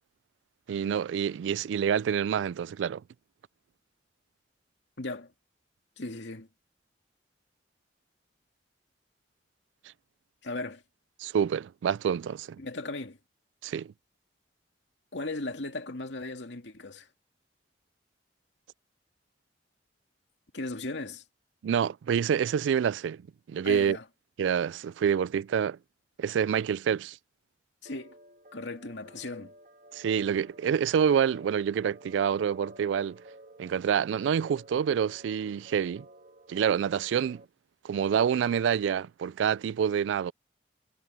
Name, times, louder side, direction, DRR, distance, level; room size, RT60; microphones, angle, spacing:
voice 1, 0.7-3.0 11.2-12.6 13.6-13.9 21.6-23.2 23.5-24.0 24.4-25.8 26.2-27.2 29.9-33.2 33.6-36.0 36.5-37.4 37.8-40.3, right 8 dB, 85° right, 0.3 m, -27 dB
voice 2, 5.0-5.3 6.0-6.5 10.4-10.8 12.6-13.2 15.1-17.1 20.5-21.2 23.6-24.0 27.8-28.2 28.5-29.5, left 2 dB, 80° left, 2.3 m, -37 dB
sound 1, 27.8-37.4, right 1 dB, 50° right, 2.7 m, -53 dB
head